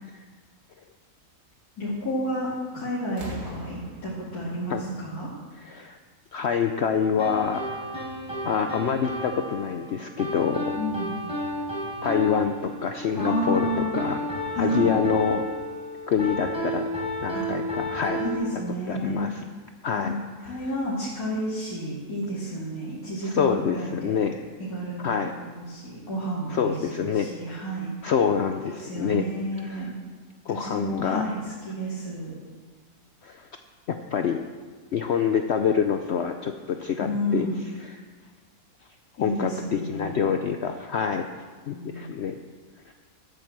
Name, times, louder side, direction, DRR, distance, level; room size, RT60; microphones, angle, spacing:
voice 1, 1.8-5.3 10.7-11.1 13.2-13.9 14.5-14.9 17.3-17.5 18.2-19.3 19.9-20.2 20.4-24.1 24.6-25.2 25.5-26.7 27.1-27.9 28.6-29.9 30.5-32.3 37.0-37.6 39.2-40.2 41.7-42.0, equal, 90° left, -9 dB, 3.0 m, -31 dB
sound 1, 2.4-2.7 3.1-5.8 6.9-7.0, left 1 dB, 60° right, 2.1 m, -43 dB
voice 2, 5.6-6.0 6.3-7.6 7.9-8.0 8.4-10.7 12.0-14.2 14.6-15.4 16.1-16.8 17.2-18.2 18.5-18.6 18.9-19.5 19.8-20.2 20.6-20.7 23.2-24.4 25.0-25.3 26.5-27.3 27.5-27.6 28.0-29.2 29.6-29.9 30.5-31.2 33.2-33.5 33.9-34.4 34.9-37.5 37.8-38.0 39.2-41.3 41.7-42.3 42.9-43.0, left 7 dB, 60° left, 6 dB, 0.8 m, -26 dB
sound 2, 7.2-18.4, equal, 5° right, 4.5 m, -32 dB
12.5 x 7.8 x 7.4 m, 1.5 s
omnidirectional pair, 1.6 m